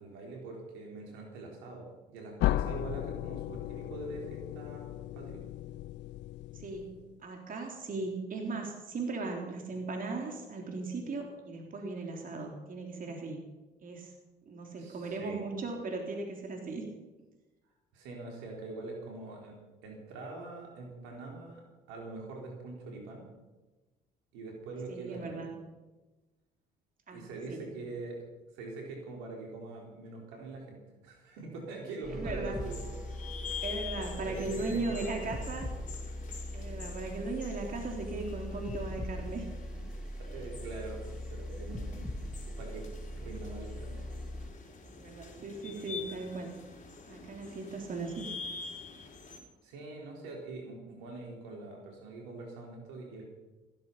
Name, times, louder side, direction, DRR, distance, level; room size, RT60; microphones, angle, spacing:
voice 1, 0.0-5.4 14.8-15.4 17.9-19.6 19.8-23.3 24.3-25.5 27.1-28.2 28.5-30.8 31.0-32.9 33.4-33.5 34.0-35.6 40.2-42.9 43.1-44.0 45.6-46.0 49.6-53.3, right 3 dB, 80° right, 0 dB, 4.3 m, -44 dB
sound 1, 2.4-7.2, left 14 dB, 70° left, 0.5 m, -35 dB
voice 2, 6.5-13.4 13.8-14.1 14.5-16.8 24.9-25.6 27.1-27.6 32.1-32.8 33.6-35.7 36.5-39.5 44.9-46.6 47.1-48.3, right 3 dB, 45° right, 2 dB, 3.4 m, -38 dB
sound 2, 32.0-44.5, equal, 5° right, 2.9 m, -40 dB
sound 3, 32.6-49.4, left 5 dB, 40° left, 4.4 m, -46 dB
15.5 x 13.5 x 5.6 m, 1.2 s
hypercardioid pair, 60°, 19 cm